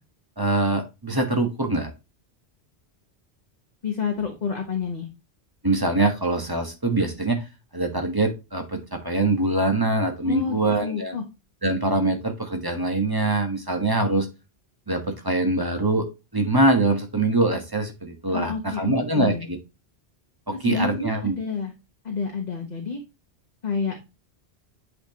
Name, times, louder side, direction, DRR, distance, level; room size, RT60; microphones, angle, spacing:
voice 1, 0.4-1.9 5.6-7.4 7.7-11.2 11.6-14.3 14.9-16.1 16.3-19.3 20.5-21.3, right 2 dB, 20° right, 4 dB, 1.3 m, -23 dB
voice 2, 3.8-5.1 10.2-11.2 18.3-19.5 20.6-21.7 22.0-23.0 23.6-24.0, left 5 dB, 40° left, 2 dB, 1.2 m, -29 dB
8.2 x 4.3 x 2.9 m, 0.26 s
omnidirectional pair, 1.1 m